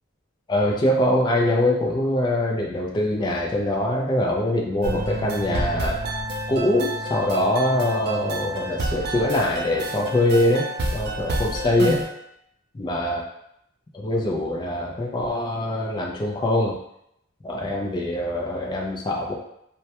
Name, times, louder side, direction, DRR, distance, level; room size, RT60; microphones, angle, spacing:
voice 1, 0.5-6.0 6.5-10.7 10.9-12.0 12.8-13.2 13.9-16.8 17.4-19.4, left 1 dB, 20° left, -1 dB, 0.3 m, -23 dB
sound 1, 4.8-12.1, right 2 dB, 55° right, 0.4 m, -29 dB
2.2 x 2.1 x 2.8 m, 0.77 s
head